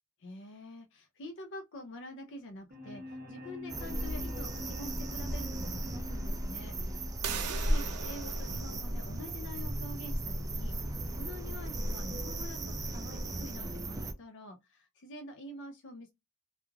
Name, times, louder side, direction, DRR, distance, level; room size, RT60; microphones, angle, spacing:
voice 1, 0.2-16.1, left 1 dB, 60° left, 0.5 m, -47 dB
sound 1, 2.7-8.7, left 2 dB, 40° right, 0.9 m, -46 dB
sound 2, 3.7-14.1, right 1 dB, 15° right, 0.3 m, -35 dB
sound 3, 7.2-12.8, right 8 dB, 85° right, 0.5 m, -44 dB
3.1 x 2.3 x 2.2 m
head